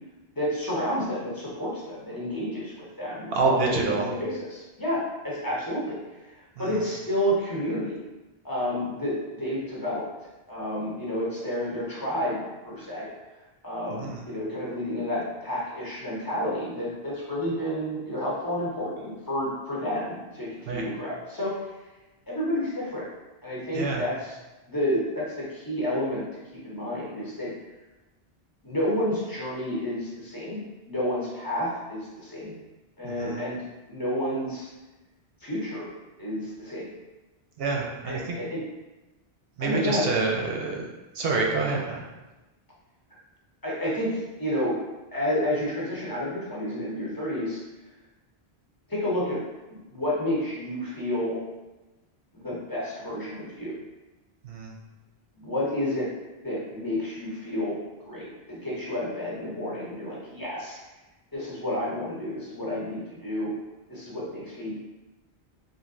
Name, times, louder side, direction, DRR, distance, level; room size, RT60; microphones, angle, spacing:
voice 1, 0.4-6.0 6.3-8.0 8.4-10.1 10.5-12.4 12.6-13.1 13.6-21.5 22.3-23.0 23.4-24.4 24.7-27.5 28.6-30.6 30.9-32.5 33.0-33.6 33.9-34.7 35.4-35.9 36.2-36.9 38.1-38.6 39.6-40.1 43.6-44.8 45.1-47.6 48.9-49.4 49.7-51.4 52.3-53.8 55.4-56.1 56.4-57.8 58.1-60.8 61.3-63.5 63.9-64.9, left 1 dB, 20° left, -7 dB, 0.7 m, -30 dB
voice 2, 3.3-4.0 6.6-6.7 13.9-14.2 20.7-20.9 23.7-24.0 33.2-33.4 37.6-38.4 39.6-40.8 41.1-42.0 54.4-54.7, right 3 dB, 70° right, -1 dB, 0.7 m, -27 dB
3.1 x 2.6 x 2.5 m, 1.1 s
omnidirectional pair, 1.1 m